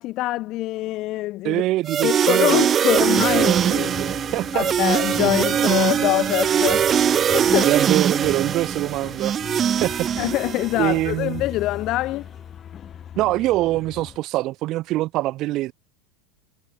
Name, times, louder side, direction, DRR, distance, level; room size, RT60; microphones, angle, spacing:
voice 1, 0.0-1.6 2.0-3.9 4.5-6.9 7.3-7.7 10.2-12.3, left 17 dB, 45° left, 1.6 m, -24 dB
voice 2, 1.4-2.7 3.0-4.7 5.2-6.1 7.6-9.3 9.8-10.1 10.8-11.4 13.2-15.7, right 17 dB, 45° right, 1.3 m, -24 dB
sound 1, 1.9-11.0, right 8 dB, 30° right, 0.4 m, -21 dB
sound 2, 2.9-14.2, left 9 dB, 30° left, 4.2 m, -39 dB
supercardioid pair, 120°, 0 cm